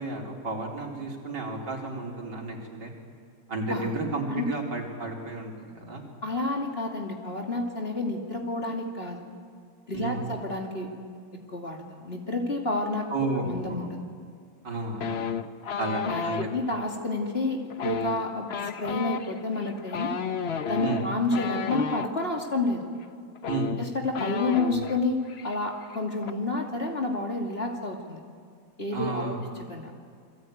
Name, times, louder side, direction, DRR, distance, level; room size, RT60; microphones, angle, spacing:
voice 1, 0.0-2.9 3.5-6.0 9.9-10.3 13.1-13.9 14.6-15.2 15.8-16.4 20.8-21.0 23.5-23.7 28.9-29.4, right 3 dB, 60° right, -1 dB, 4.7 m, -32 dB
voice 2, 6.2-9.3 9.9-10.9 11.5-13.1 13.4-13.9 16.0-18.5 18.8-20.1 20.6-22.8 23.8-28.2 28.8-29.4 29.7-29.9, left 2 dB, 30° left, 1 dB, 2.7 m, -29 dB
sound 1, 15.0-16.5 17.7-22.1 23.0-23.1 23.4-25.0 25.3-25.6 25.8-26.3, left 6 dB, 45° left, 0.8 m, -32 dB
28.5 x 22.5 x 9.3 m, 2.2 s
omnidirectional pair, 2.1 m